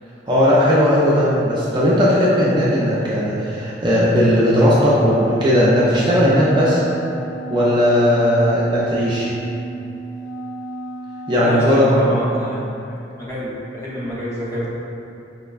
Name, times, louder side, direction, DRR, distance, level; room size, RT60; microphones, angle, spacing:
voice 1, 0.3-6.8 7.5-9.3 11.3-12.1, equal, 25° right, -8 dB, 0.4 m, -16 dB
Wind instrument woodwind instrument, 4.5-12.6, right 2 dB, 90° left, 0.4 m, -33 dB
voice 2, 11.4-12.6 13.2-14.7, equal, 15° left, -10 dB, 0.8 m, -27 dB
5.0 x 2.1 x 2.3 m, 2.8 s
head